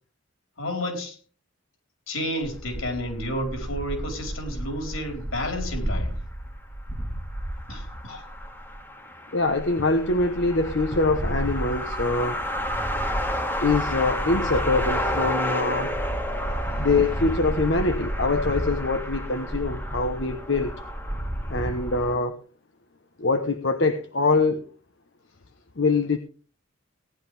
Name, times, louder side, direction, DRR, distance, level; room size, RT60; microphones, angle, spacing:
voice 1, 0.6-1.2 2.1-6.2 7.7-8.2, equal, 80° left, 4 dB, 4.4 m, -31 dB
sound 1, 2.4-22.1, equal, 10° left, 1.7 m, -30 dB
voice 2, 9.3-12.4 13.6-15.9 16.8-20.7 21.5-22.4 23.2-24.6 25.8-26.2, left 3 dB, 55° left, 6 dB, 1.0 m, -24 dB
18.0 x 11.0 x 3.4 m, 0.38 s
head